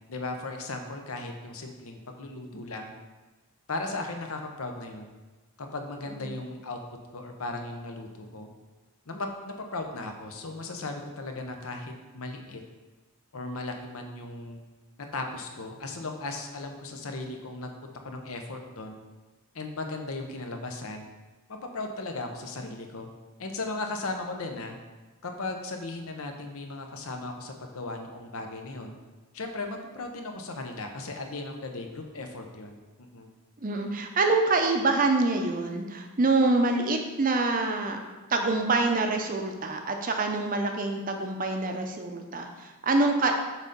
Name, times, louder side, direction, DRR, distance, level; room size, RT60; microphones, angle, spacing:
voice 1, 0.1-2.9 3.7-5.1 5.6-6.8 7.1-8.5 9.1-12.6 13.3-14.6 15.1-17.7 18.0-19.0 19.5-21.1 21.5-23.1 23.4-24.8 25.2-29.0 29.3-32.8 33.1-33.3, left 2 dB, 70° left, 4 dB, 0.8 m, -36 dB
voice 2, 33.6-38.0 38.3-43.3, right 3 dB, 40° right, 4 dB, 0.6 m, -26 dB
6.3 x 3.8 x 5.2 m, 1.2 s
head